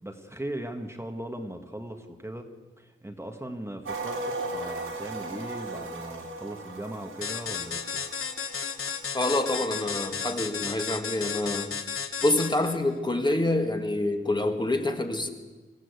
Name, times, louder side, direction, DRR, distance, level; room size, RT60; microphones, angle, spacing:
voice 1, 0.0-2.5 2.8-7.9, right 1 dB, 10° right, 4 dB, 1.6 m, -38 dB
sound 1, 3.9-9.8 10.2-10.3, right 2 dB, 85° right, 4.7 m, -37 dB
sound 2, 7.2-12.8, left 6 dB, 85° left, 1.4 m, -33 dB
voice 2, 9.1-11.7 12.2-15.3, left 2 dB, 20° left, 4 dB, 2.0 m, -26 dB
25.0 x 15.0 x 8.3 m, 1.3 s
wide cardioid pair, 120°, 21 cm